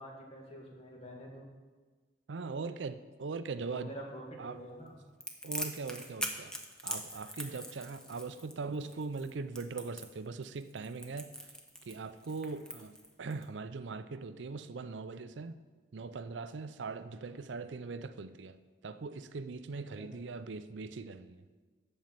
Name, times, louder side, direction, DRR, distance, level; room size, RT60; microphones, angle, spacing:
voice 1, 0.0-1.5 3.6-4.9 17.3-17.5 20.0-20.4, right 1 dB, 35° left, -1 dB, 2.0 m, -47 dB
voice 2, 2.3-3.9 4.4-4.6 5.4-6.5 6.8-11.3 11.9-12.9 13.2-15.5 15.9-18.6 18.8-21.4, right 4 dB, 85° right, 12 dB, 0.5 m, -40 dB
Crackle, 5.2-13.4, equal, 5° left, 0.9 m, -42 dB
12.5 x 4.4 x 7.4 m, 1.4 s
head